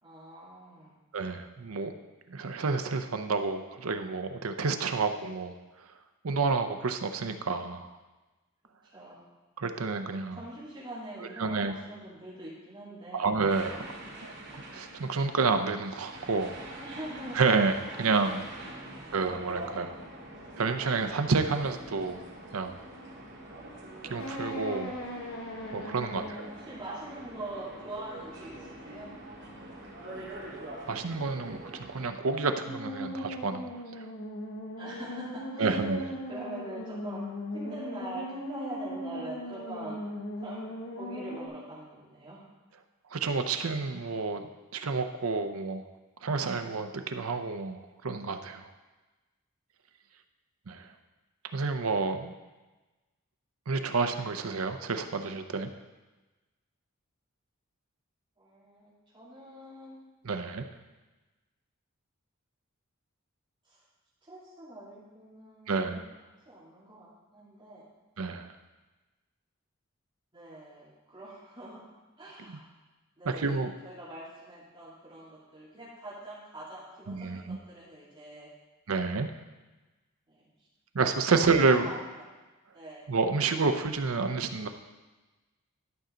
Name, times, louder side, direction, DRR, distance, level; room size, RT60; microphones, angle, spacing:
voice 1, 0.0-1.0 8.9-9.2 10.3-13.3 14.0-14.3 16.8-17.4 18.5-18.9 25.9-29.1 34.8-35.8 36.3-37.2 37.5-40.0 40.4-42.4 58.4-60.0 63.7-63.8 64.3-66.0 66.5-67.9 70.3-71.8 72.2-72.7 73.2-78.5 80.3-80.4 81.6-82.0 82.7-83.0, right 1 dB, 25° right, -9 dB, 2.9 m, -44 dB
voice 2, 1.1-1.9 2.3-5.6 6.2-7.9 9.6-10.4 11.4-11.7 13.1-14.0 14.7-16.5 17.3-18.4 19.1-20.0 20.6-22.2 22.5-22.7 24.1-24.9 25.7-26.2 30.9-34.0 35.6-36.1 43.1-45.8 46.2-48.6 50.7-50.9 51.5-52.3 53.7-55.7 60.2-60.6 65.7-66.0 68.2-68.5 73.3-73.7 77.1-77.6 78.9-79.3 80.9-81.9 83.1-84.7, right 4 dB, 85° right, 8 dB, 0.7 m, -29 dB
sound 1, 13.5-32.1, right 1 dB, 60° right, 2.1 m, -44 dB
sound 2, 24.2-26.7 32.3-41.5, left 1 dB, 70° left, 1.4 m, -39 dB
12.0 x 5.6 x 3.9 m, 1.2 s
head